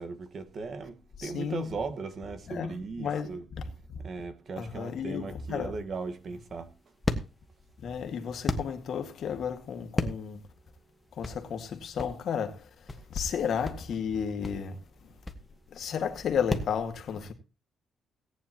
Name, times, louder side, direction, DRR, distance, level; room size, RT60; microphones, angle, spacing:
voice 1, 0.0-3.4 4.0-6.7, right 4 dB, 45° right, 1.5 m, -37 dB
voice 2, 1.2-1.7 2.5-4.0 4.6-5.7 7.8-10.4 11.2-12.7 13.1-14.8 15.7-17.3, left 7 dB, 60° left, 1.9 m, -33 dB
sound 1, 5.9-16.8, left 2 dB, 15° left, 1.5 m, -36 dB
18.0 x 9.5 x 2.9 m
cardioid pair, 135°, 0 cm